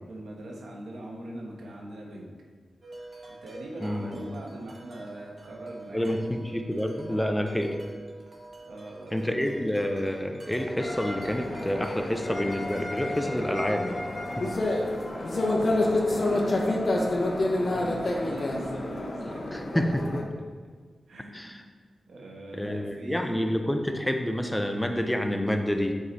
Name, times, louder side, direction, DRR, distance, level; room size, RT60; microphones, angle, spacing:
voice 1, 0.1-2.3 3.3-6.4 7.1-7.4 8.7-9.4 15.1-16.4 17.3-19.6 21.1-21.6 22.1-23.5, right 1 dB, 85° right, -1 dB, 1.3 m, -42 dB
Wind chime, 2.8-16.8, right 2 dB, 40° right, 1.5 m, -46 dB
voice 2, 3.8-4.1 5.9-7.7 9.1-14.0 14.4-14.5 19.5-20.2 21.3-21.6 22.5-25.9, left 1 dB, 5° left, 5 dB, 0.7 m, -28 dB
sound 1, 10.8-20.2, left 2 dB, 45° left, 1.1 m, -28 dB
7.8 x 4.7 x 4.1 m, 1.5 s
cardioid pair, 75°, 0 cm